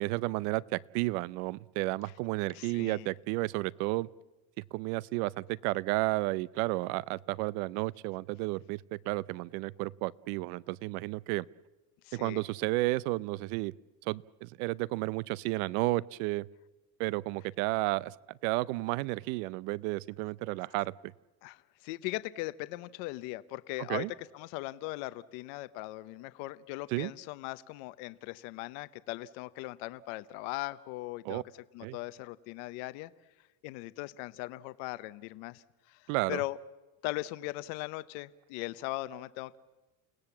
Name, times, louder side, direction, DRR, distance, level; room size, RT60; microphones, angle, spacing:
voice 1, 0.0-4.1 4.6-11.4 12.1-13.7 14.0-16.5 17.0-21.1 23.9-24.1 26.9-27.1 31.2-31.4 31.8-32.0 36.1-36.4, right 21 dB, 80° right, 22 dB, 0.6 m, -32 dB
voice 2, 2.5-3.1 12.0-12.4 21.4-24.1 24.3-31.4 31.7-33.1 33.6-36.6 37.0-39.6, left 19 dB, 70° left, 15 dB, 0.8 m, -39 dB
29.5 x 18.0 x 7.2 m, 1.2 s
cardioid pair, 165°, 45 cm